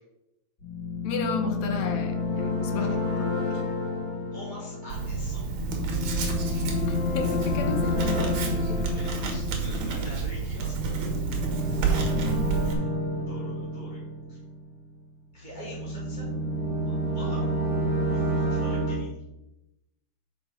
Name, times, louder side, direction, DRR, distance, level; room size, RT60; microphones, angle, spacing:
sound 1, 0.6-14.9 15.4-19.0, left 1 dB, 20° left, 2.5 m, -29 dB
voice 1, 1.0-3.4 6.9-8.8 12.1-12.9, left 4 dB, 70° left, 5 dB, 2.0 m, -33 dB
voice 2, 4.3-5.5 8.4-11.2 11.8-12.1 12.7-12.9 13.3-14.0 14.3-14.4 15.3-16.3 16.8-17.4 18.1-19.2, equal, 15° right, -8 dB, 2.3 m, -45 dB
Writing, 4.9-12.7, right 5 dB, 65° right, 2.6 m, -30 dB
6.7 x 5.4 x 6.0 m, 0.93 s
omnidirectional pair, 3.7 m